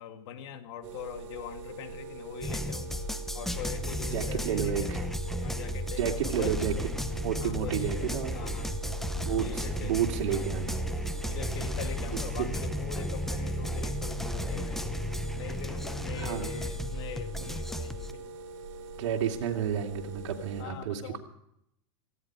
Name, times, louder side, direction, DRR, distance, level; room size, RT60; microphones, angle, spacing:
voice 1, 0.0-3.0 3.3-5.1 5.4-6.6 7.4-7.9 8.3-8.7 9.4-10.0 10.3-10.5 11.3-14.9 15.3-18.3 20.6-21.2, left 8 dB, 60° left, 6 dB, 2.5 m, -42 dB
sound 1, 0.8-20.6, right 3 dB, 50° right, 4.2 m, -44 dB
sound 2, 2.4-18.1, equal, ahead, 0.9 m, -34 dB
voice 2, 4.1-5.0 6.0-6.7 7.1-8.3 9.2-10.8 12.1-12.5 16.2-16.6 19.0-21.2, right 9 dB, 70° right, 0 dB, 2.9 m, -31 dB
18.5 x 15.5 x 4.8 m, 0.74 s
supercardioid pair, 140°, 16 cm